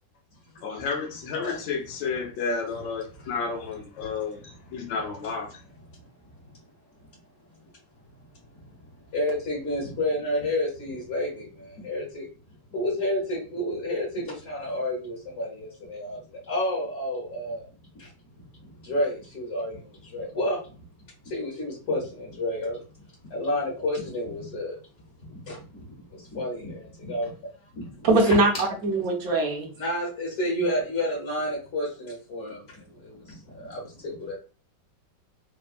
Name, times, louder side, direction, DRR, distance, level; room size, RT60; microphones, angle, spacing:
voice 1, 0.6-4.4 4.7-5.5, left 5 dB, 80° left, 1.4 m, -31 dB
voice 2, 4.4-5.0 5.9-6.0 6.3-6.4 7.0-7.1 8.5-8.8 9.1-12.3 12.7-17.7 18.0-18.1 18.4-20.8 21.2-22.8 23.3-24.8 25.2-28.4 29.8-34.3, left 1 dB, 50° left, 1.0 m, -31 dB
voice 3, 28.0-28.5 28.8-29.7, right 2 dB, 65° right, 0.9 m, -21 dB
3.4 x 2.1 x 2.3 m
omnidirectional pair, 2.0 m